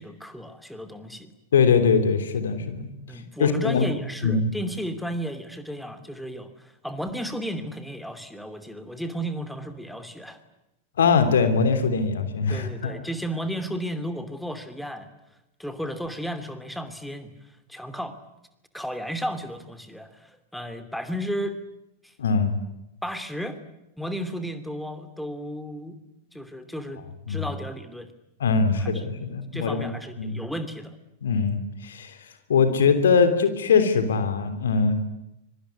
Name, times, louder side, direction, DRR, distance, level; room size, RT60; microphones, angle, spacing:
voice 1, 0.0-1.3 3.1-10.4 12.5-15.1 15.6-17.3 17.7-18.2 18.7-21.6 22.0-22.1 23.0-23.6 24.0-26.0 26.3-28.1 28.6-29.0 29.5-31.0, equal, ahead, 8 dB, 2.7 m, -34 dB
voice 2, 1.5-2.9 3.4-3.9 4.2-4.5 11.0-12.9 22.2-22.6 27.3-27.5 28.4-29.9 30.2-30.4 31.2-32.2 32.5-34.9, left 5 dB, 65° left, 8 dB, 3.1 m, -22 dB
25.0 x 24.0 x 9.8 m, 0.90 s
figure-of-eight pair, 90°, 0 cm